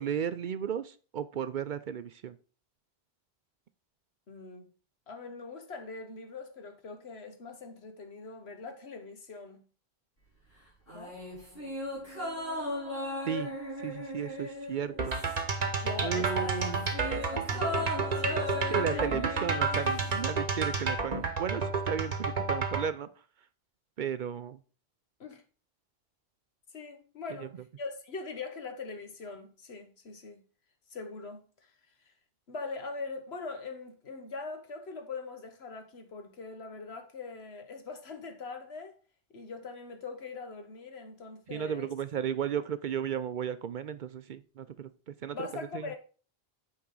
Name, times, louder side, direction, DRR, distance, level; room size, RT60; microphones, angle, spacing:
voice 1, 0.0-2.3 13.2-13.5 13.8-15.2 16.0-16.8 18.7-23.1 24.0-24.6 41.5-44.9 45.2-45.5 45.7-45.8, right 8 dB, 60° right, 0.6 m, -34 dB
voice 2, 4.3-4.7 5.1-9.6 10.9-11.2 15.8-19.1 19.5-19.6 25.2-25.4 26.7-30.4 30.9-31.7 32.0-32.1 32.5-39.0 39.3-41.9 45.3-46.0, left 4 dB, 85° left, 1.5 m, -42 dB
sound 1, 10.9-15.6 15.9-20.2 20.5-20.6, left 2 dB, 70° left, 4.8 m, -37 dB
sound 2, 15.0-22.9, right 4 dB, 40° right, 1.0 m, -31 dB
8.7 x 4.8 x 3.8 m
omnidirectional pair, 1.1 m